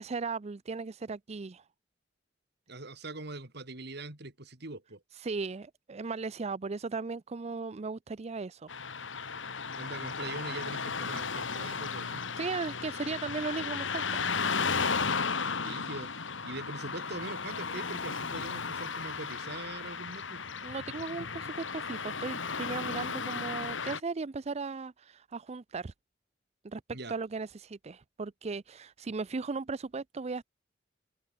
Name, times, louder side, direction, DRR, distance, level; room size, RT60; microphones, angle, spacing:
voice 1, 0.0-1.6 5.1-8.7 12.4-14.6 20.6-25.9 26.6-26.8 27.1-30.4, right 4 dB, 35° right, 0.5 m, -37 dB
voice 2, 2.7-5.0 9.8-12.2 15.5-20.4 26.9-27.1, right 2 dB, 60° right, 2.8 m, -42 dB
Car passing by / Traffic noise roadway noise, 8.7-24.0, left 5 dB, 85° left, 2.5 m, -35 dB
head